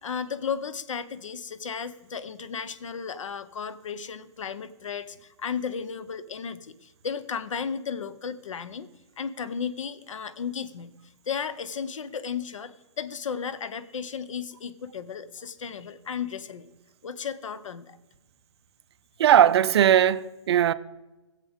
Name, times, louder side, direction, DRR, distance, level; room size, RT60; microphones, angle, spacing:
voice 1, 0.0-8.9 9.2-10.9 11.3-16.7 17.0-18.0, left 6 dB, 80° left, 0.7 m, -34 dB
voice 2, 19.2-20.7, right 10 dB, 55° right, 0.4 m, -19 dB
14.5 x 7.5 x 3.5 m
hypercardioid pair, 145°, 16 cm